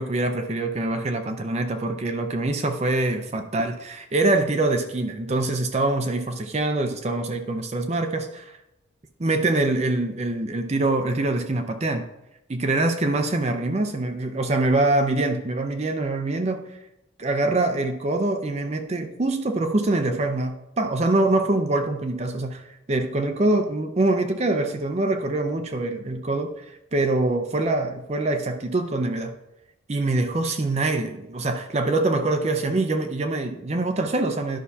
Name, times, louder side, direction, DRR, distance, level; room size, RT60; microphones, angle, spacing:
voice 1, 0.0-8.6 9.2-12.1 12.5-16.7 17.2-26.5 26.9-29.3 29.9-34.6, right 2 dB, 35° right, 6 dB, 0.5 m, -24 dB
11.5 x 5.7 x 2.8 m, 0.87 s
head